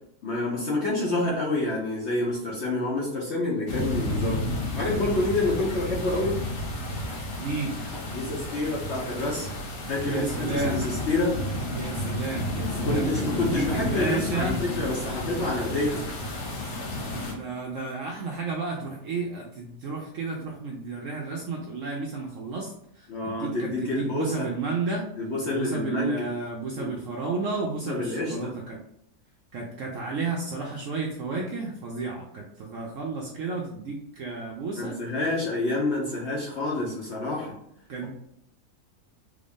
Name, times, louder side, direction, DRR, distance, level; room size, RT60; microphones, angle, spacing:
voice 1, 0.2-4.5 4.7-6.4 8.1-9.5 9.9-11.3 12.7-16.1 23.1-24.5 25.2-26.3 26.8-26.9 27.8-28.5 34.8-37.6, left 2 dB, 55° left, -4 dB, 0.8 m, -28 dB
sound 1, 3.7-17.3, left 1 dB, 85° left, 1.5 m, -31 dB
voice 2, 7.4-7.7 10.0-10.8 11.7-14.6 17.1-25.0 25.5-28.8 29.5-34.9 37.9-38.1, right 3 dB, 70° right, -1 dB, 0.8 m, -32 dB
3.4 x 2.6 x 3.5 m, 0.72 s
omnidirectional pair, 1.8 m